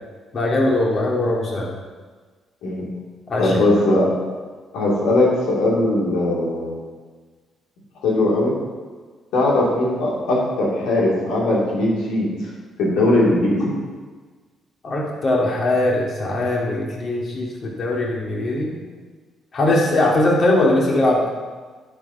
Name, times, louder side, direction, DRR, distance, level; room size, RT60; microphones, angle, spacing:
voice 1, 0.3-1.7 3.3-3.6 14.8-18.7 19.5-21.2, left 1 dB, 50° left, -3 dB, 2.6 m, -20 dB
voice 2, 3.4-4.1 4.7-6.7 8.0-8.5 9.3-12.3 12.8-13.7, left 1 dB, 90° left, -4 dB, 2.9 m, -19 dB
11.0 x 5.3 x 5.6 m, 1.4 s
cardioid pair, 90°, 0 cm